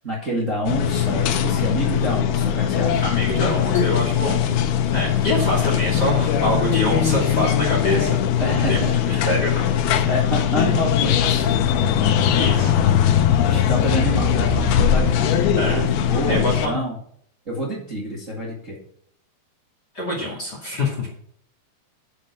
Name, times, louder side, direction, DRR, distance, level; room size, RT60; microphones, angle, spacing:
voice 1, 0.0-3.0 5.6-5.8 8.4-9.4 10.1-11.5 13.5-15.3 15.6-17.0 17.5-18.8, equal, 25° right, -3 dB, 2.1 m, -28 dB
sound 1, 0.7-16.7, left 8 dB, 90° left, 2.9 m, -20 dB
voice 2, 3.0-4.5 4.9-8.2 8.7-9.6 12.3-12.7 15.5-15.8 16.3-16.8 19.9-21.1, left 1 dB, 30° left, -2 dB, 2.5 m, -25 dB
8.3 x 7.5 x 5.9 m, 0.65 s
omnidirectional pair, 4.4 m